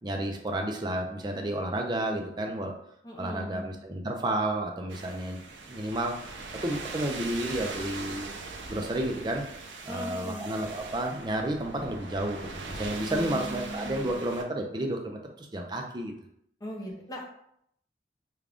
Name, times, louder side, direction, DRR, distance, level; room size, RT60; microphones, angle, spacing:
voice 1, 0.0-2.7 3.2-8.3 8.7-9.4 9.8-16.1, right 1 dB, 25° right, 3 dB, 0.4 m, -31 dB
voice 2, 3.0-3.7 9.9-10.5 13.1-14.1 16.6-17.3, equal, 20° left, -2 dB, 0.7 m, -38 dB
sound 1, 4.9-14.4, right 3 dB, 85° right, 0.5 m, -41 dB
3.6 x 2.3 x 3.4 m, 0.72 s
head